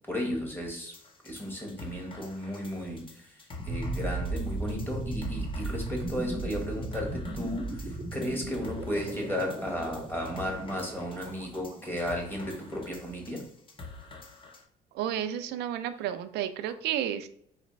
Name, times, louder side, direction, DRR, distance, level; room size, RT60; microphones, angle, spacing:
voice 1, 0.1-1.0 1.2-13.4, left 1 dB, 10° left, 1 dB, 1.3 m, -34 dB
sound 1, 0.9-14.6, left 3 dB, 30° left, 0.9 m, -48 dB
sound 2, 3.6-12.5, right 2 dB, 35° right, 0.6 m, -36 dB
voice 2, 14.9-17.3, right 10 dB, 75° right, 10 dB, 0.4 m, -31 dB
4.0 x 3.2 x 3.1 m, 0.67 s
cardioid pair, 110°, 17 cm